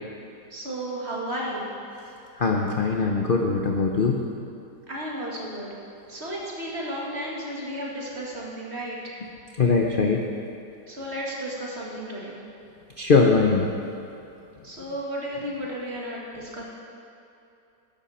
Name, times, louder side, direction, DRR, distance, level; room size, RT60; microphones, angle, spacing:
voice 1, 0.5-1.7 4.9-5.7 6.1-9.1 10.9-12.4 14.6-16.6, equal, 40° right, -4 dB, 2.2 m, -33 dB
voice 2, 2.4-4.2 9.6-10.2 13.0-13.7, left 4 dB, 45° left, 1 dB, 0.7 m, -21 dB
13.5 x 11.0 x 4.3 m, 2.7 s
omnidirectional pair, 1.8 m